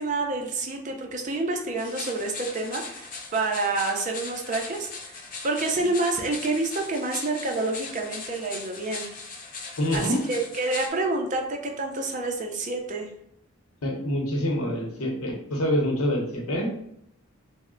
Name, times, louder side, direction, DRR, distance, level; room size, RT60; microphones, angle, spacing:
voice 1, 0.0-9.1 9.9-13.1, right 2 dB, 35° right, 2 dB, 0.4 m, -28 dB
sound 1, 1.8-10.9, left 4 dB, 40° left, 0.5 m, -39 dB
voice 2, 9.8-10.2 13.8-16.7, equal, 80° left, 0 dB, 0.8 m, -26 dB
3.1 x 2.0 x 3.7 m, 0.74 s
head